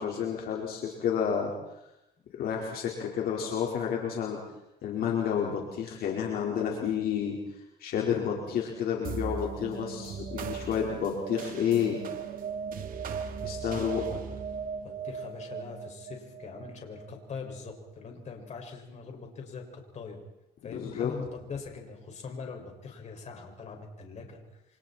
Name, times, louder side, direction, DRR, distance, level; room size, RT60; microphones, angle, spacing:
voice 1, 0.0-1.5 2.4-4.4 4.8-7.4 7.8-12.0 13.4-14.2 20.7-21.1, left 8 dB, 65° left, -1 dB, 4.9 m, -30 dB
voice 2, 6.5-7.3 9.8-10.7 14.8-20.2 20.6-24.4, left 5 dB, 45° left, 2 dB, 6.4 m, -43 dB
sound 1, 9.0-17.8, right 6 dB, 55° right, 2.6 m, -38 dB
29.0 x 27.0 x 4.5 m, 0.90 s
cardioid pair, 110°, 17 cm